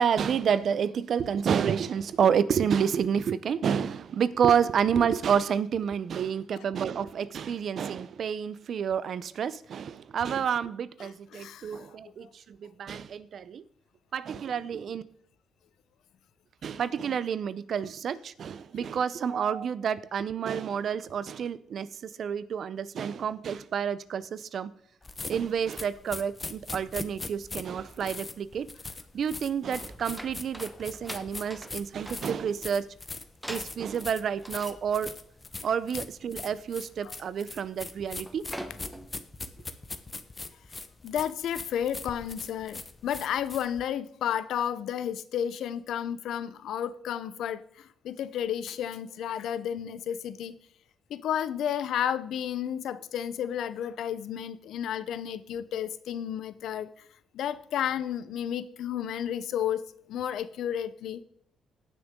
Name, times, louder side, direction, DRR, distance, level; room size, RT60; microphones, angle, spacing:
voice 1, 0.0-13.6 14.1-15.0 16.6-24.7 25.3-28.7 29.1-32.9 33.5-35.1 35.6-38.5, right 7 dB, 60° right, 0.6 m, -29 dB
voice 2, 11.0-12.3 12.6-12.7 37.0-37.2 41.0-50.5 51.1-57.1 57.3-59.8 60.1-61.2, left 9 dB, 75° left, 0.7 m, -32 dB
sound 1, 25.0-43.8, left 3 dB, 25° left, 1.0 m, -41 dB
sound 2, 29.8-32.7 33.4-34.1 34.4-35.1 35.5-35.7 36.0-36.2 36.6-37.0 37.3-37.8 38.1-39.2, equal, 5° right, 1.2 m, -44 dB
17.5 x 6.2 x 3.7 m
cardioid pair, 90°, 0 cm